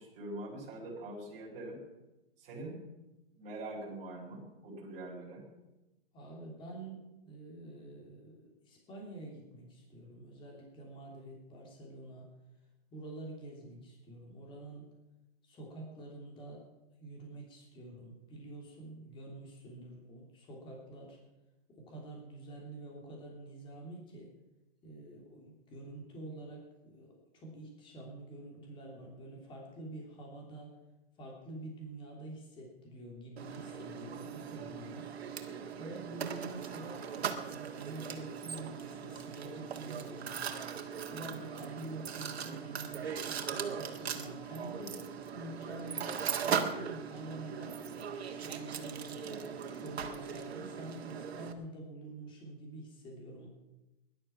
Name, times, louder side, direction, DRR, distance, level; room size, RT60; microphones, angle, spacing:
voice 1, 0.0-1.8 2.4-2.8 3.3-5.4, right 2 dB, 20° right, -4 dB, 5.6 m, -43 dB
voice 2, 6.1-12.3 12.9-14.8 15.4-16.6 17.0-21.2 21.7-24.3 24.8-30.7 31.2-35.2 35.8-37.0 37.5-40.6 41.1-45.1 45.3-47.8 48.3-53.5, right 2 dB, 15° left, -1 dB, 3.2 m, -47 dB
Mechanisms, 33.4-51.5, right 7 dB, 85° right, 1.9 m, -39 dB
19.0 x 11.5 x 6.1 m, 1.0 s
hypercardioid pair, 160°, 31 cm